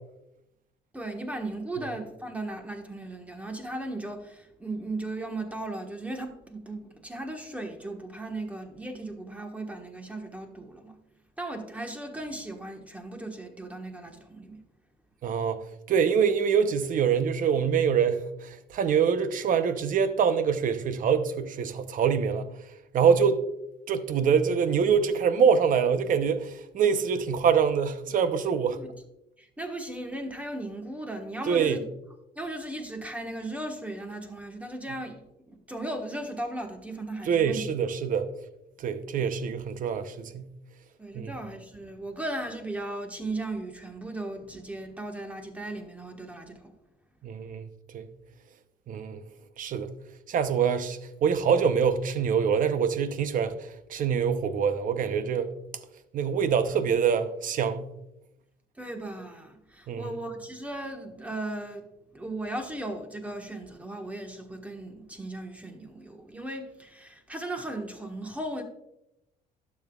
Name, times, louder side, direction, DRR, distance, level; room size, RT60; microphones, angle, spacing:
voice 1, 0.9-11.0 11.4-14.6 28.7-28.9 29.4-31.9 32.3-35.2 35.5-37.7 41.0-46.7 58.8-61.8 62.1-68.6, right 2 dB, 10° right, 1.3 m, -37 dB
voice 2, 15.2-15.6 15.9-22.5 22.9-23.4 23.9-28.8 31.5-31.8 37.3-38.3 38.8-40.5 41.1-41.3 47.2-47.7 47.9-48.1 48.9-49.2 49.6-49.9 50.3-55.5 56.1-57.9 59.9-60.2, right 7 dB, 50° right, 0.7 m, -25 dB
12.0 x 7.2 x 2.4 m
cardioid pair, 110°, 17 cm